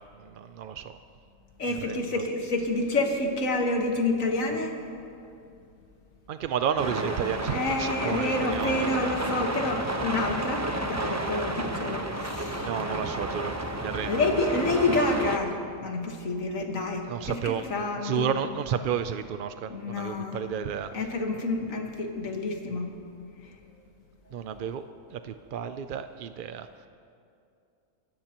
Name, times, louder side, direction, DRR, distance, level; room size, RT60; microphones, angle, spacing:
voice 1, 0.2-1.0 1.7-2.2 6.3-8.9 12.6-14.2 17.1-17.7 18.0-20.9 24.3-24.9 25.1-26.7, right 8 dB, 65° right, 10 dB, 0.5 m, -32 dB
voice 2, 1.6-4.7 7.5-10.6 10.9-12.7 14.1-18.3 19.7-20.4 20.9-22.9, left 2 dB, 75° left, 3 dB, 1.9 m, -28 dB
sound 1, 6.8-15.4, right 1 dB, 15° right, 0.8 m, -31 dB
25.0 x 17.0 x 3.0 m, 2.5 s
omnidirectional pair, 1.4 m